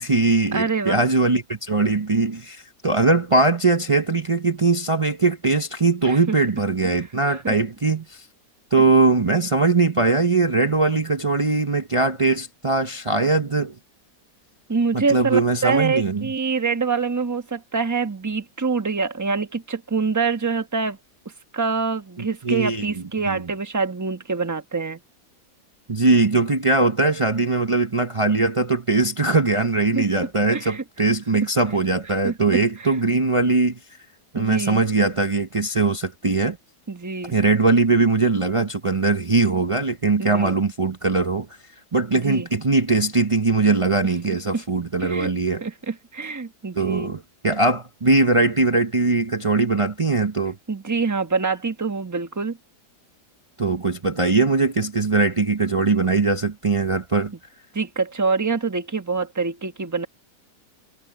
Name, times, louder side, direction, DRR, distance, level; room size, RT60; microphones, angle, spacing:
voice 1, 0.0-8.2 8.7-13.8 14.9-16.3 22.4-23.5 25.9-33.8 34.3-36.6 37.3-41.5 41.9-45.6 46.8-50.6 53.6-57.3, right 3 dB, 40° right, 0.4 m, -21 dB
voice 2, 0.5-1.0 6.0-6.3 7.3-7.6 14.7-21.0 21.5-25.0 29.9-30.0 30.5-30.8 32.2-33.0 34.4-34.8 36.9-37.4 40.2-40.6 42.1-42.5 44.5-44.6 45.0-45.3 45.6-47.1 50.7-52.6 57.7-60.1, right 4 dB, 15° right, 1.0 m, -25 dB
omnidirectional pair, 1.8 m